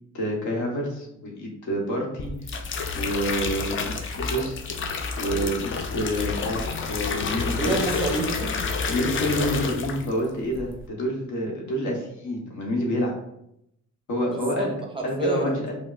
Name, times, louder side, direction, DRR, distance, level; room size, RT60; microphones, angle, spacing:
voice 1, 0.1-2.6 2.9-4.6 5.2-7.7 8.9-13.1 14.1-14.7 15.0-15.8, equal, 70° left, -1 dB, 1.1 m, -28 dB
sound 1, 2.2-10.2 10.5-10.9, left 4 dB, 40° left, 0.5 m, -29 dB
voice 2, 7.5-8.5 14.3-15.6, right 2 dB, 15° right, 1 dB, 0.6 m, -28 dB
5.0 x 2.1 x 2.4 m, 0.80 s
cardioid pair, 90°, 30 cm